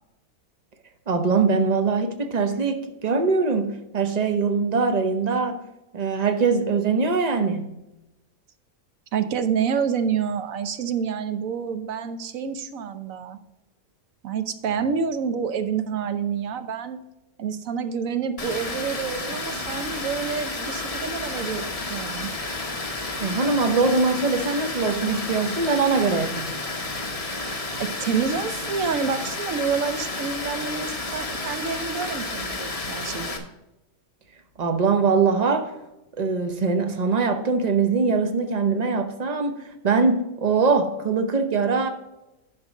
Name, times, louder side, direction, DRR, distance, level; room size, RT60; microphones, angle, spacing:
voice 1, 1.1-5.6 5.9-7.7 23.2-26.5 34.6-35.7 36.2-41.9, right 4 dB, 35° right, 0.9 m, -22 dB
voice 2, 9.1-13.4 14.2-17.0 17.4-22.3 27.8-33.5, right 6 dB, 70° right, 1.2 m, -28 dB
Water, 18.4-33.4, left 2 dB, 25° left, 1.1 m, -31 dB
11.0 x 4.6 x 5.1 m
omnidirectional pair, 1.5 m